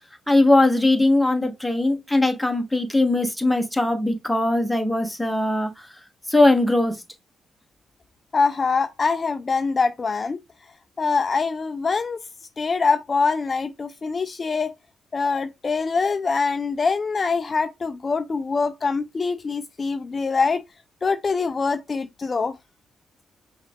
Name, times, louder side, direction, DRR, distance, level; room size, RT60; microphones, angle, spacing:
voice 1, 0.3-5.7 6.3-7.0, left 2 dB, 5° left, 1.1 m, -20 dB
voice 2, 8.3-10.4 11.0-12.2 12.6-14.7 15.1-20.6 21.0-22.6, left 4 dB, 35° left, 0.4 m, -24 dB
5.4 x 2.3 x 3.5 m
cardioid pair, 90°, 0 cm